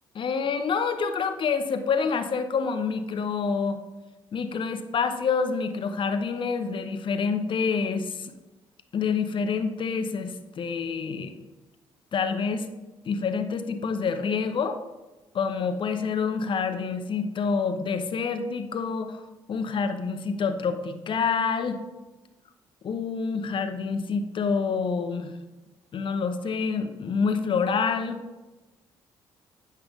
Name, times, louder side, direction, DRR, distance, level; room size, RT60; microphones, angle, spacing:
voice 1, 0.1-3.8 4.3-8.3 8.9-11.3 12.1-12.7 13.0-14.8 15.3-19.2 19.5-21.8 22.8-25.3 25.9-28.2, left 5 dB, 50° left, 7 dB, 0.8 m, -27 dB
8.7 x 5.6 x 3.5 m, 1.1 s
supercardioid pair, 60°, 11 cm